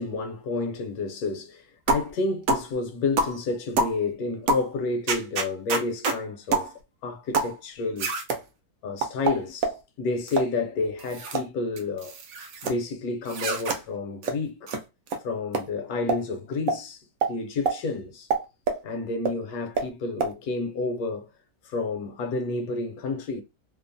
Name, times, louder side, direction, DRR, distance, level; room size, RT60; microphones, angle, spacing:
voice 1, 0.0-6.7 7.0-8.2 8.8-9.7 10.0-12.2 12.6-14.7 15.2-18.3 18.8-21.3 21.6-23.4, left 3 dB, 70° left, 1.0 m, -30 dB
sound 1, 1.9-2.1 2.5-2.7 3.2-3.4 3.8-4.0 4.5-4.7 5.1-6.2 6.5-6.7 7.3-7.5 8.0-8.4 9.0-9.8 10.3-10.5 11.0-11.5 11.8-12.7 13.3-13.8 14.2-14.3 14.7-14.8 15.1-15.2 15.5-15.6 16.1-16.2 16.7-16.8 17.2-17.3 17.7-17.8 18.3-18.8 19.2-19.3 19.8-19.9 20.2-20.3, right 3 dB, 70° right, 0.9 m, -26 dB
2.9 x 2.0 x 2.6 m
omnidirectional pair, 1.8 m